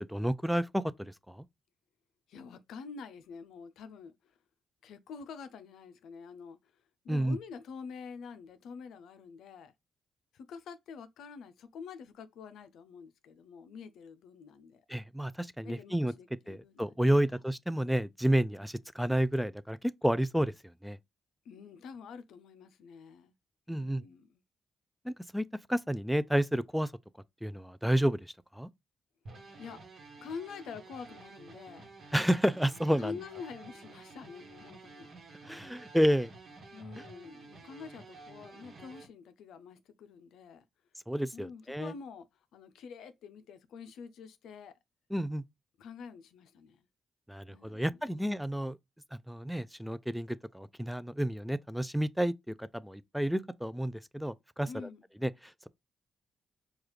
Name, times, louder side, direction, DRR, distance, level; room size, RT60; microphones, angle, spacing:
voice 1, 0.1-0.8 1.3-1.4 7.1-7.4 14.9-16.1 16.5-20.5 20.8-21.0 23.7-24.0 25.1-26.9 27.4-28.7 32.1-33.1 35.4-36.3 41.1-41.9 45.1-45.4 47.3-48.8 49.1-54.7 55.2-55.7, equal, ahead, 0.3 m, -30 dB
voice 2, 2.3-4.3 4.8-6.7 7.0-9.7 10.3-14.8 15.6-16.9 17.3-17.4 21.4-23.3 23.7-24.4 29.6-29.8 30.2-31.9 33.0-35.1 36.7-40.6 41.3-42.3 42.5-44.8 45.8-46.9 47.4-48.3 54.7-55.0, left 6 dB, 80° left, 0.4 m, -47 dB
sound 1, 29.3-39.1, right 3 dB, 60° right, 1.1 m, -51 dB
4.7 x 2.3 x 3.1 m
supercardioid pair, 50°, 0 cm